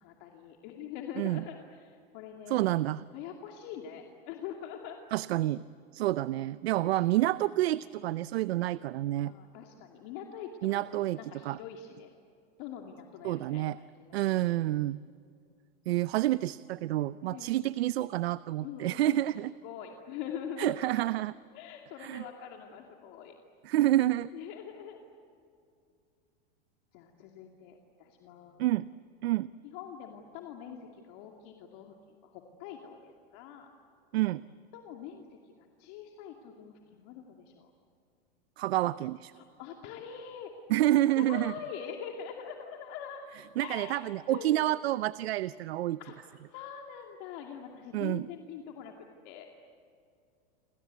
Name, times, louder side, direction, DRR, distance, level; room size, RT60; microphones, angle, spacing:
voice 1, 0.0-2.7 3.1-5.0 6.1-6.2 6.7-7.0 9.3-12.1 12.6-14.2 17.3-17.5 18.6-19.1 19.6-21.0 21.5-23.3 24.3-25.0 26.9-28.7 29.6-33.7 34.7-35.5 35.8-37.7 39.4-40.5 41.2-43.2 43.6-44.7 46.0-49.5, left 8 dB, 50° left, 2 dB, 2.5 m, -44 dB
voice 2, 2.5-3.0 5.1-5.6 5.9-9.3 10.6-11.2 11.4-11.6 13.2-13.8 14.1-15.0 15.9-19.5 20.6-21.4 22.0-22.2 23.6-24.3 28.6-28.9 29.2-29.5 34.1-34.4 38.6-39.3 40.7-41.5 43.6-46.0 47.9-48.3, right 15 dB, 80° right, 17 dB, 0.6 m, -28 dB
28.5 x 25.5 x 8.4 m, 2.4 s
supercardioid pair, 140°, 31 cm